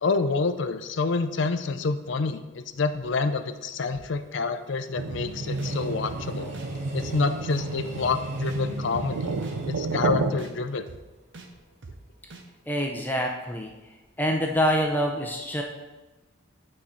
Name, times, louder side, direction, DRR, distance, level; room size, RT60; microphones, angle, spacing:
voice 1, 0.0-6.5 6.9-9.3 9.7-10.8, left 4 dB, 65° left, 9 dB, 0.5 m, -28 dB
Train, 3.1-12.2 12.5-12.6, right 1 dB, 35° right, 1.1 m, -47 dB
sound 1, 5.0-10.3, right 3 dB, 90° right, 0.6 m, -30 dB
sound 2, 5.1-5.2 5.6-5.7 6.1-6.2 6.5-6.7 7.0-7.2 7.5-7.6 8.0-8.1 8.5-8.6 8.9-9.1 9.4-9.6 9.9-10.0 10.4-10.5 10.9-11.0 11.3-11.5 11.8-12.0 12.3-12.4, right 3 dB, 60° right, 0.8 m, -43 dB
voice 2, 12.7-13.7 14.2-15.6, equal, 10° left, 1 dB, 0.6 m, -26 dB
8.3 x 4.3 x 5.0 m, 1.1 s
head